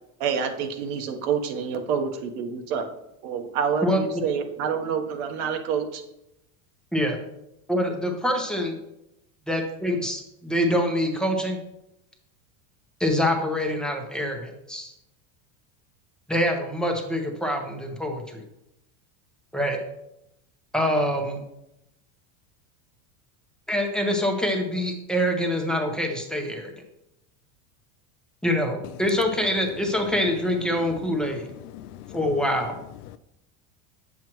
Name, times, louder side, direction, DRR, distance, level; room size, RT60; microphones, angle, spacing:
voice 1, 0.2-2.9 3.2-6.0, right 7 dB, 70° right, 1.2 m, -27 dB
voice 2, 3.8-4.2 6.9-7.1 7.7-8.8 9.5-11.6 13.0-14.9 16.3-18.4 19.5-19.8 20.7-21.4 23.7-26.7 28.4-31.5 32.1-32.7, equal, ahead, 1.0 m, -25 dB
voice 3, 30.8-32.3 33.0-33.2, left 13 dB, 85° left, 0.6 m, -43 dB
9.2 x 7.3 x 3.1 m
supercardioid pair, 150°, 44 cm